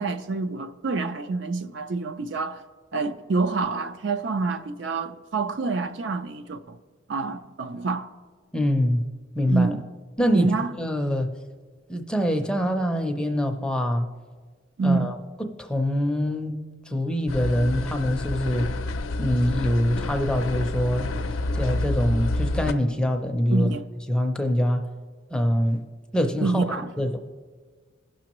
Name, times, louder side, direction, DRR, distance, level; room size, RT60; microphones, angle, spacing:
voice 1, 0.0-2.6 2.9-6.8 7.1-8.1 9.5-9.8 10.3-10.7 14.8-15.1 23.5-23.8 26.4-26.9, right 3 dB, 60° right, 0.4 m, -27 dB
voice 2, 8.5-9.0 9.3-9.7 10.2-10.5 10.8-11.3 11.9-14.1 14.8-16.5 16.9-18.7 19.2-21.1 21.5-23.7 24.1-24.8 25.3-25.8 26.1-26.7 27.0-27.2, equal, 5° left, 0.5 m, -24 dB
sound 1, 17.3-22.7, left 2 dB, 85° left, 0.5 m, -29 dB
17.5 x 6.1 x 3.0 m
head